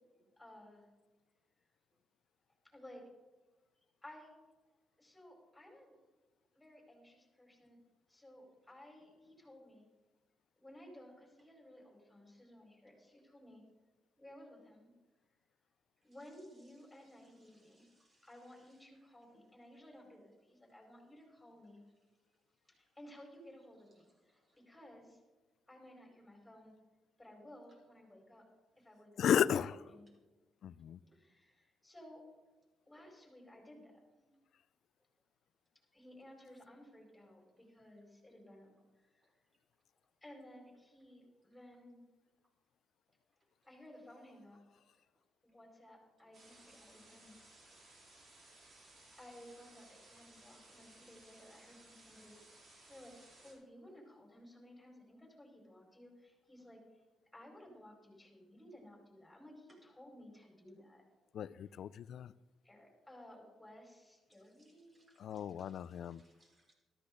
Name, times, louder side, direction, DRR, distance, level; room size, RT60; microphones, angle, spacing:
voice 1, 0.4-0.9 2.6-3.0 3.7-4.3 5.0-5.9 6.5-7.8 8.1-9.9 10.6-13.6 14.2-14.9 15.3-15.4 16.0-17.9 18.2-21.8 22.7-25.2 25.7-26.7 27.2-28.5 28.8-29.2 29.5-29.7 31.1-32.2 32.9-34.3 35.9-39.4 40.2-42.0 43.6-44.6 45.4-47.3 49.1-53.1 53.4-57.1 57.3-61.0 62.6-65.1, left 1 dB, 10° left, 0 dB, 4.8 m, -57 dB
voice 2, 16.3-19.1 22.5-22.8 24.0-24.6 30.1-30.2 31.0-31.2 39.2-39.6 50.6-50.7 59.7-59.8 60.8-60.9 64.3-66.7, right 1 dB, 35° right, -1 dB, 4.8 m, -73 dB
voice 3, 29.2-29.8 30.6-31.0 61.3-62.3 65.2-66.2, left 9 dB, 65° left, 18 dB, 0.4 m, -34 dB
sound 1, 46.3-53.5, right 2 dB, 55° right, 4.3 m, -61 dB
13.5 x 13.5 x 3.9 m, 1.2 s
cardioid pair, 90°, 0 cm